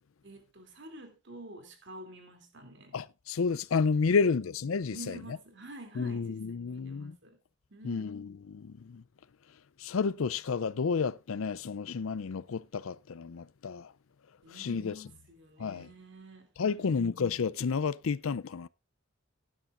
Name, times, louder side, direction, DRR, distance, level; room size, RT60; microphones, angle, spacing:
voice 1, 0.2-3.0 4.1-4.4 4.9-7.4 7.7-8.1 14.4-17.1, right 1 dB, 60° right, 2.8 m, -49 dB
voice 2, 2.9-5.1 6.0-7.2 7.8-9.0 9.8-13.9 14.6-14.9 15.6-15.9 16.6-18.7, left 5 dB, 85° left, 0.5 m, -31 dB
16.5 x 10.0 x 2.5 m
head